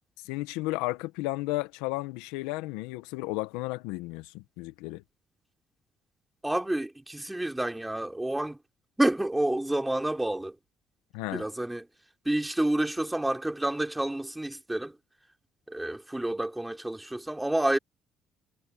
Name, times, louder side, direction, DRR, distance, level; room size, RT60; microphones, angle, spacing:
voice 1, 0.2-5.0 11.1-11.4, left 20 dB, 85° left, 1.4 m, -33 dB
voice 2, 6.4-8.6 9.0-10.6 11.3-11.9 12.3-15.0 15.7-17.8, right 1 dB, 10° right, 3.8 m, -29 dB
hypercardioid pair, 60°, 0 cm